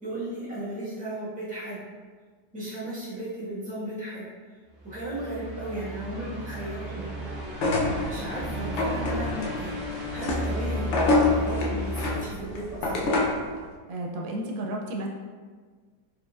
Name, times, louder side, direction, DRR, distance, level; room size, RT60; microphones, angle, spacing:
voice 1, 0.0-1.8 2.5-4.3 4.8-7.2 8.0-13.1, right 1 dB, 5° right, -9 dB, 1.1 m, -35 dB
sound 1, 4.8-13.1, equal, 50° right, 0.7 m, -34 dB
sound 2, 7.5-13.5, left 2 dB, 75° left, 0.6 m, -27 dB
voice 2, 13.9-15.1, right 1 dB, 80° right, 0 dB, 1.3 m, -32 dB
4.2 x 3.6 x 2.3 m, 1.5 s
omnidirectional pair, 1.9 m